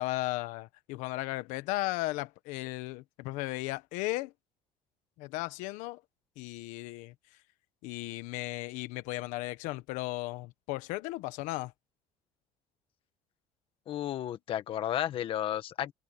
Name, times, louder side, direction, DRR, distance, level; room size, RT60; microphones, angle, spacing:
voice 1, 0.0-4.3 5.2-6.0 6.4-7.1 7.8-11.7, left 19 dB, 85° left, 1.3 m, -35 dB
voice 2, 13.9-15.9, left 11 dB, 45° left, 1.5 m, -33 dB
cardioid pair, 155°, 12 cm